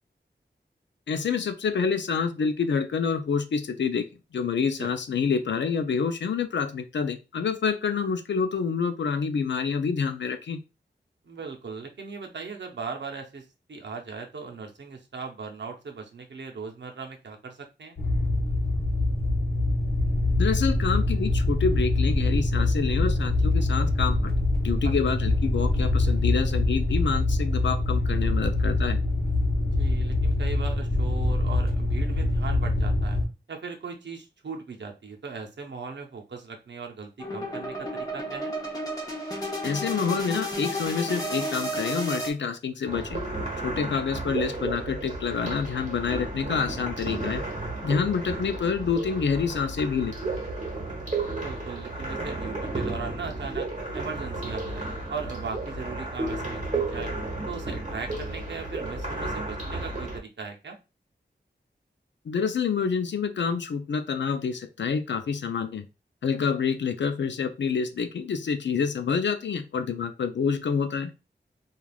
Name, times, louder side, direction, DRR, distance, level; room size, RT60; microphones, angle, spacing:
voice 1, 1.1-4.1 4.3-10.6 20.4-24.3 24.6-29.0 39.6-43.2 43.6-47.4 47.8-50.2 62.3-65.8 66.2-71.1, left 6 dB, 80° left, 9 dB, 0.4 m, -27 dB
voice 2, 11.2-18.0 24.8-24.9 29.8-33.2 33.5-38.5 43.8-44.0 51.3-57.1 57.5-60.8, right 5 dB, 80° right, 3 dB, 0.7 m, -38 dB
sound 1, 18.0-33.3, left 2 dB, 55° left, 0.9 m, -24 dB
sound 2, 37.2-42.3, equal, 20° left, 0.8 m, -32 dB
sound 3, 42.9-60.2, right 2 dB, 40° right, 1.0 m, -33 dB
3.3 x 2.3 x 2.3 m, 0.27 s
wide cardioid pair, 75°, 18 cm